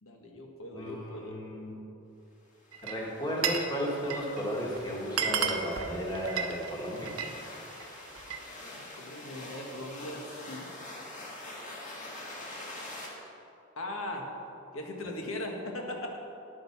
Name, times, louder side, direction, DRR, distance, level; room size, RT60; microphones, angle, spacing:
voice 1, 0.0-1.3 8.8-10.7 13.8-14.3 14.7-16.2, left 1 dB, 90° left, 2 dB, 1.6 m, -39 dB
voice 2, 0.7-1.8 2.8-7.1 15.0-15.1, equal, 20° left, -3 dB, 1.7 m, -34 dB
sound 1, 2.6-13.1, left 1 dB, 40° left, 2.0 m, -45 dB
Glass, 2.7-3.7 4.0-4.4 4.8-4.9 5.1-7.4 7.7-8.5, right 6 dB, 90° right, 0.8 m, -32 dB
10.5 x 7.9 x 5.9 m, 2.8 s
head